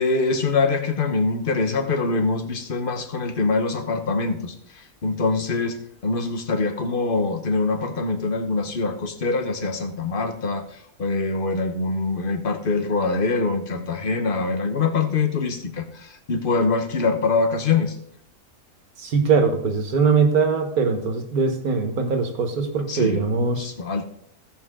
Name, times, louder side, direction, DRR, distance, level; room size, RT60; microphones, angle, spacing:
voice 1, 0.0-18.0 22.9-23.2 23.6-24.1, left 3 dB, 40° left, 7 dB, 1.2 m, -24 dB
voice 2, 19.0-23.7, right 5 dB, 80° right, 5 dB, 1.9 m, -21 dB
16.5 x 5.7 x 3.7 m, 0.65 s
omnidirectional pair, 1.5 m